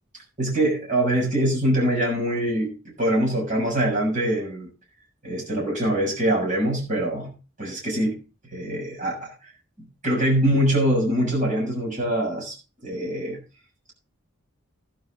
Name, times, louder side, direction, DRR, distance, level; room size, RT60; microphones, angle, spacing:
voice 1, 0.4-4.7 5.2-7.3 7.6-8.2 8.5-9.3 10.0-12.6 12.8-13.4, right 1 dB, 40° right, -2 dB, 7.2 m, -23 dB
13.5 x 11.5 x 3.9 m, 0.32 s
head